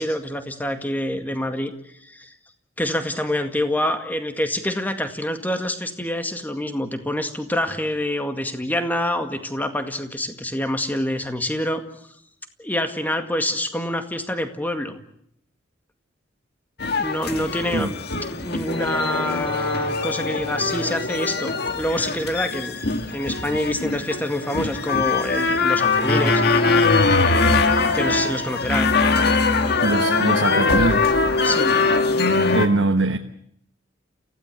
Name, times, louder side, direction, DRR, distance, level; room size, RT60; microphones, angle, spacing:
voice 1, 0.0-1.7 2.1-2.3 2.8-11.8 12.6-15.0 17.0-18.0 18.4-22.8 23.1-26.4 27.9-28.9 31.4-31.8, left 1 dB, 10° left, 7 dB, 2.0 m, -26 dB
sound 1, 16.8-32.7, left 3 dB, 60° left, 1.8 m, -21 dB
voice 2, 29.8-31.1 32.5-33.2, right 2 dB, 85° right, 5 dB, 1.3 m, -22 dB
29.5 x 16.0 x 8.1 m, 0.70 s
head